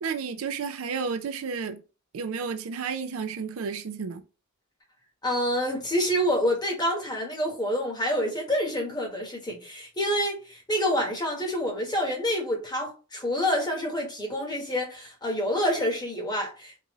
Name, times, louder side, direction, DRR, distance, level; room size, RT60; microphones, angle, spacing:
voice 1, 0.0-1.8 2.1-4.2, right 5 dB, 70° right, 0.4 m, -32 dB
voice 2, 5.2-16.8, equal, 20° left, 1.2 m, -27 dB
3.7 x 2.6 x 3.0 m
head